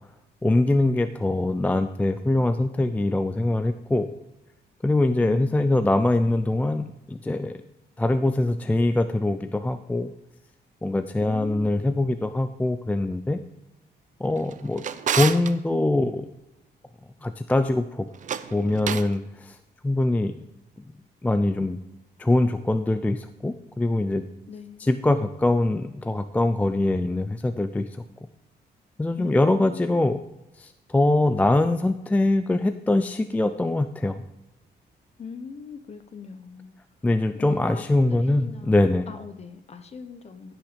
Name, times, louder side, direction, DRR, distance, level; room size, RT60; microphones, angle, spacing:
voice 1, 0.4-4.1 4.8-7.6 8.0-10.1 10.8-13.4 14.2-14.8 15.2-16.3 17.2-18.1 18.5-19.6 19.8-20.3 21.2-21.8 22.2-24.2 24.8-27.9 29.0-30.2 30.9-34.2 37.0-39.1, left 2 dB, 10° left, 0.4 m, -23 dB
voice 2, 5.2-6.1 11.2-11.7 24.5-25.0 29.2-30.1 35.2-36.7 37.3-38.8 39.1-40.6, left 5 dB, 35° left, 1.0 m, -41 dB
Drawer open or close, 14.4-15.5 18.1-19.2, right 8 dB, 45° right, 0.6 m, -30 dB
16.0 x 6.1 x 5.1 m
cardioid pair, 135°, 18 cm